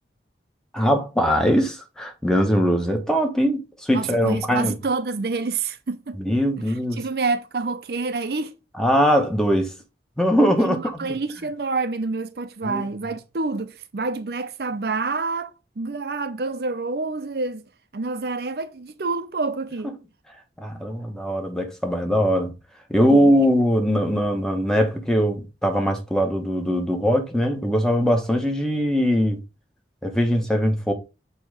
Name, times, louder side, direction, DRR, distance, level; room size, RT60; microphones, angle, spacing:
voice 1, 0.7-4.7 6.2-7.0 8.8-9.7 10.2-11.2 12.6-12.9 20.6-22.5 22.9-29.4 30.0-30.9, equal, 5° left, 1.0 m, -21 dB
voice 2, 3.9-6.2 7.0-8.6 10.6-17.6 17.9-19.9 23.1-23.3, right 3 dB, 60° right, 0.6 m, -28 dB
7.0 x 3.0 x 4.8 m
head